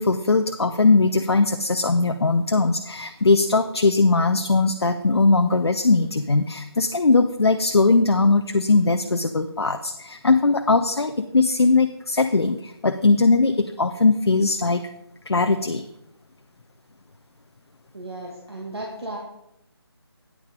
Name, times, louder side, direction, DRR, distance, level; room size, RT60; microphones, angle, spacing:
voice 1, 0.0-14.9 15.3-15.8, left 3 dB, 70° left, 7 dB, 0.6 m, -20 dB
voice 2, 17.9-19.2, right 1 dB, 70° right, -1 dB, 1.9 m, -34 dB
9.3 x 6.5 x 5.2 m, 0.82 s
figure-of-eight pair, 155°, 14 cm